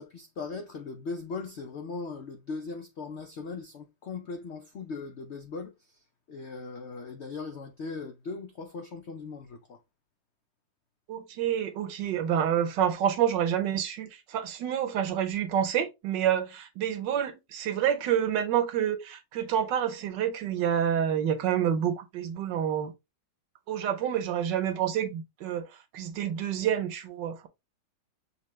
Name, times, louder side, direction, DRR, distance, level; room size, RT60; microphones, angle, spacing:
voice 1, 0.0-6.0 6.3-9.8, left 4 dB, 90° left, 0.6 m, -39 dB
voice 2, 11.1-22.9 23.7-25.7 25.9-27.5, right 9 dB, 75° right, 1.4 m, -28 dB
6.6 x 2.4 x 3.1 m
omnidirectional pair, 2.0 m